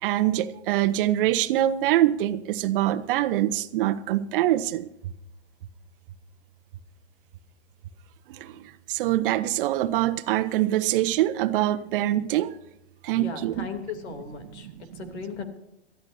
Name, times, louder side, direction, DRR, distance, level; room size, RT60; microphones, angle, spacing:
voice 1, 0.0-4.9 8.3-12.5 13.0-13.7 14.4-15.3, right 13 dB, 50° right, 12 dB, 1.0 m, -25 dB
voice 2, 13.2-14.7 15.0-15.5, left 5 dB, 70° left, 6 dB, 3.1 m, -36 dB
22.0 x 14.0 x 2.7 m, 0.86 s
hypercardioid pair, 130°, 34 cm